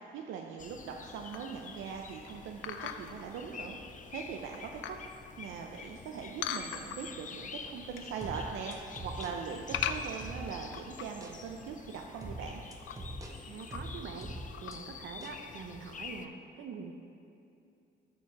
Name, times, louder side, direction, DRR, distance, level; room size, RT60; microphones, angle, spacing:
voice 1, 0.0-5.0 5.4-12.6, right 6 dB, 85° right, 1 dB, 0.6 m, -41 dB
sound 1, 0.6-16.3, left 5 dB, 40° left, 0.6 m, -48 dB
sound 2, 1.3-1.6 2.6-3.2 3.8-3.9 4.4-5.1 6.4-7.2 7.6-8.2 8.4-8.9 9.7-11.3 11.6-11.7 12.0-12.1 12.6-13.0 13.6-14.1 14.5-14.7, left 9 dB, 80° left, 0.6 m, -38 dB
sound 3, 8.2-10.7 11.2-11.4 12.2-14.8 15.2-15.4, right 1 dB, 15° right, 1.1 m, -43 dB
voice 2, 13.4-14.3 14.6-16.9, right 5 dB, 70° right, 5 dB, 1.0 m, -44 dB
13.5 x 4.6 x 5.8 m, 2.6 s
cardioid pair, 90°, 20 cm